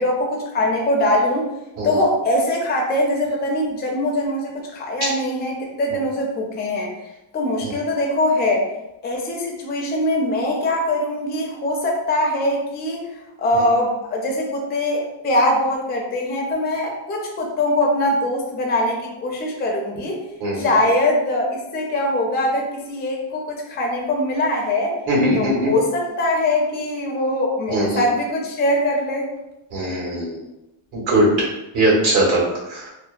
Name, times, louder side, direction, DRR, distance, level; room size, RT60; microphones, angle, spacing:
voice 1, 0.0-1.5 1.8-6.9 7.3-8.7 9.0-13.0 13.4-20.1 20.5-24.9 25.3-29.3, left 1 dB, 20° left, 0 dB, 0.4 m, -22 dB
voice 2, 25.1-25.7 27.7-28.0 29.7-30.4 30.9-32.4 32.7-32.9, right 1 dB, 70° right, -4 dB, 1.4 m, -20 dB
2.9 x 2.1 x 2.4 m, 0.93 s
cardioid pair, 140°, 49 cm